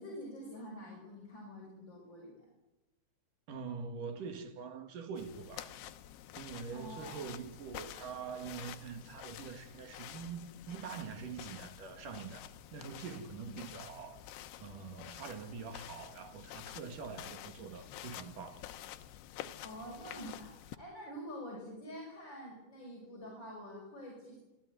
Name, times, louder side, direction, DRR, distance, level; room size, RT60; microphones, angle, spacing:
voice 1, 0.0-2.5 6.7-7.2 13.5-13.6 19.6-24.4, equal, 25° left, 6.1 m, -47 dB
voice 2, 3.5-5.7 6.4-14.3 14.6-18.6, right 5 dB, 55° right, 3.0 m, -44 dB
sound 1, 5.2-20.8, left 12 dB, 75° left, 2.8 m, -49 dB
26.0 x 17.0 x 9.3 m
omnidirectional pair, 5.4 m